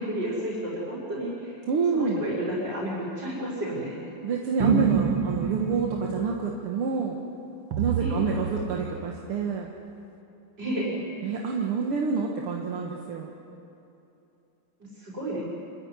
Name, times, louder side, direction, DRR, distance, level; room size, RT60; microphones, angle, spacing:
voice 1, 0.0-1.6 1.9-4.0 8.0-8.3 10.6-11.0 15.0-15.4, right 1 dB, 50° right, -7 dB, 6.3 m, -31 dB
voice 2, 1.7-2.2 4.2-7.2 7.8-9.7 11.2-13.3, right 5 dB, 85° right, -1 dB, 2.4 m, -28 dB
sound 1, 4.6-6.3 7.7-9.0, right 6 dB, 65° right, 2.0 m, -27 dB
27.5 x 13.5 x 9.9 m, 2.9 s
omnidirectional pair, 2.4 m